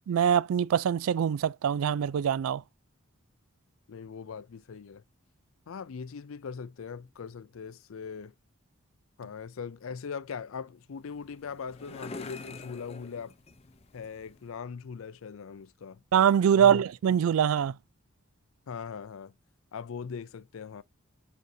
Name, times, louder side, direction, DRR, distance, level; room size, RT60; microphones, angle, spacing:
voice 1, 0.1-2.6 16.1-17.7, right 8 dB, 75° right, 0.3 m, -24 dB
voice 2, 3.9-5.0 5.7-8.3 9.2-13.3 13.9-16.0 16.5-16.8 18.7-19.3 19.7-20.8, left 6 dB, 70° left, 0.4 m, -40 dB
sound 1, 10.9-14.5, left 3 dB, 30° left, 0.6 m, -46 dB
8.0 x 5.2 x 2.7 m
head